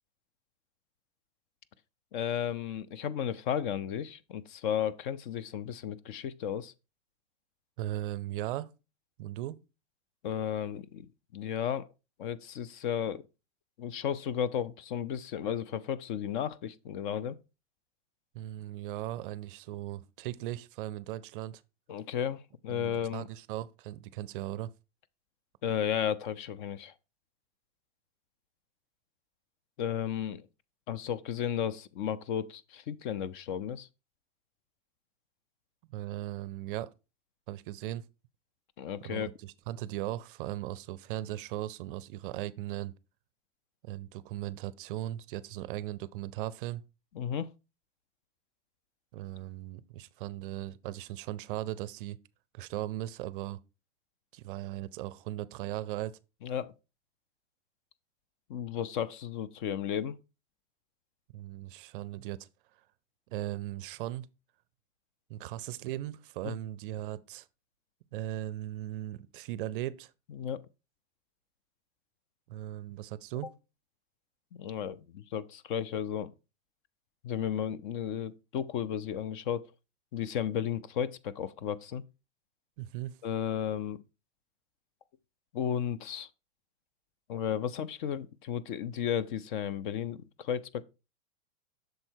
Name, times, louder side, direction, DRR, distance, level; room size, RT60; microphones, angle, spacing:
voice 1, 2.1-6.7 10.2-11.1 11.3-11.9 12.2-13.2 13.8-17.3 21.9-23.3 25.6-26.9 29.8-30.4 30.9-33.9 38.8-39.3 47.2-47.5 56.4-56.7 58.5-60.2 66.4-66.5 70.4-70.6 74.5-76.3 77.2-79.7 80.1-82.0 83.2-84.0 85.5-86.3 87.3-90.8, left 9 dB, 45° left, 0.4 m, -34 dB
voice 2, 7.8-8.7 9.2-9.6 18.3-21.6 22.7-24.7 35.9-36.9 37.5-38.1 39.0-42.9 43.8-46.8 49.1-52.2 52.5-53.6 54.3-56.1 61.3-62.5 63.3-64.3 65.3-67.5 68.1-70.1 72.5-73.5 82.8-83.2, right 14 dB, 45° right, 0.5 m, -38 dB
6.5 x 4.4 x 4.4 m
supercardioid pair, 145°, 36 cm